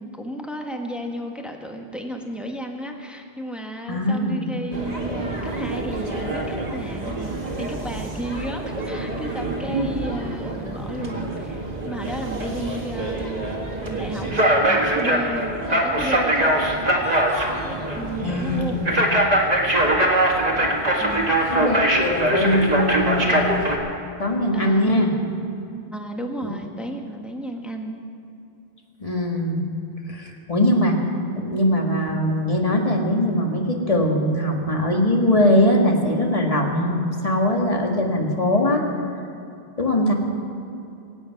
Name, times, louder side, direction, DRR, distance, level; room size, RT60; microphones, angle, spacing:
voice 1, 0.0-13.5 13.8-16.5 17.6-19.1 21.0-21.3 24.5-25.0 25.9-28.0, equal, ahead, 2 dB, 1.3 m, -33 dB
voice 2, 3.9-4.5 18.2-18.9 21.5-23.3 24.2-25.1 29.0-29.6 30.1-31.0 31.4-38.8 39.8-40.1, left 1 dB, 35° left, 1 dB, 1.9 m, -21 dB
sound 1, 4.7-23.8, right 1 dB, 40° right, 2.0 m, -23 dB
25.5 x 8.9 x 5.9 m, 2.7 s
omnidirectional pair, 1.1 m